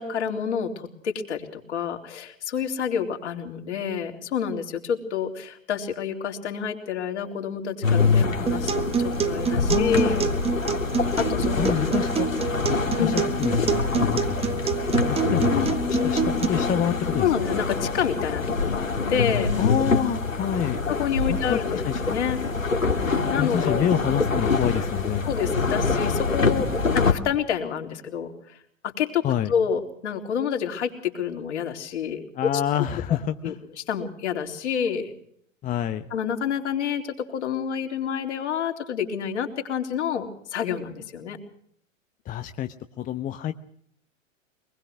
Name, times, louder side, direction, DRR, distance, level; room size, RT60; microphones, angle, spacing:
voice 1, 0.0-10.3 11.2-11.8 13.0-13.2 17.2-19.5 20.9-21.8 22.1-22.4 23.3-23.9 25.2-26.7 26.9-28.6 28.8-32.5 33.1-33.2 33.4-35.1 36.1-41.4, left 7 dB, 60° left, 4 dB, 3.8 m, -28 dB
sound 1, 7.8-27.1, left 4 dB, 85° left, 2.5 m, -25 dB
Acoustic guitar, 8.5-16.5, right 7 dB, 15° right, 1.4 m, -27 dB
voice 2, 9.7-10.1 11.6-12.3 13.0-14.6 15.0-17.3 19.6-20.8 21.3-22.2 23.4-25.3 29.2-29.5 32.3-33.6 35.6-36.1 42.2-43.5, left 10 dB, 20° left, 9 dB, 1.0 m, -27 dB
25.0 x 20.0 x 6.3 m, 0.66 s
figure-of-eight pair, 95°, 39 cm